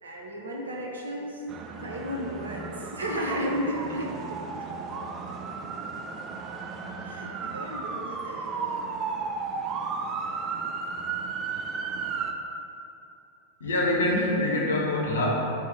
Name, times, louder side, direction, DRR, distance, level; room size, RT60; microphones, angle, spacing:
voice 1, 0.0-1.4 1.8-4.4 5.0-5.1 7.0-8.8, equal, 70° right, -2 dB, 0.6 m, -34 dB
sound 1, 1.5-12.3, right 5 dB, 30° right, 0.3 m, -34 dB
voice 2, 13.6-15.3, left 1 dB, 65° left, -3 dB, 0.7 m, -25 dB
4.2 x 2.0 x 4.5 m, 2.8 s
figure-of-eight pair, 90°, 0 cm